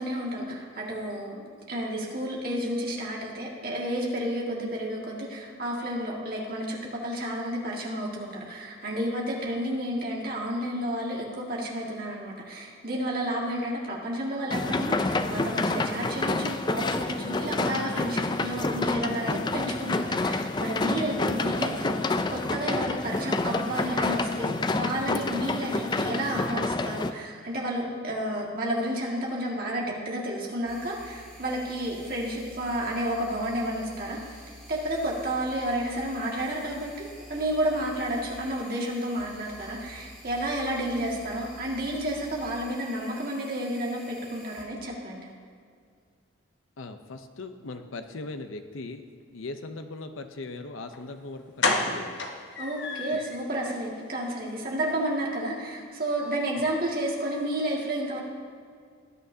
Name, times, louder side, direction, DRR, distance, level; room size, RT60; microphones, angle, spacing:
voice 1, 0.0-45.3 52.6-58.2, right 1 dB, 45° right, -3 dB, 2.1 m, -31 dB
sound 1, 14.5-27.1, left 2 dB, 20° left, 0.4 m, -28 dB
sound 2, 30.7-44.6, equal, ahead, 2.1 m, -49 dB
voice 2, 46.8-49.1 49.3-52.2 56.5-56.7, left 3 dB, 85° left, 7 dB, 0.7 m, -39 dB
sound 3, 50.9-51.0 51.6-53.4 53.7-53.8 54.2-54.4 54.6-54.7, left 3 dB, 65° left, 1.1 m, -29 dB
19.0 x 9.1 x 2.8 m, 2.1 s
head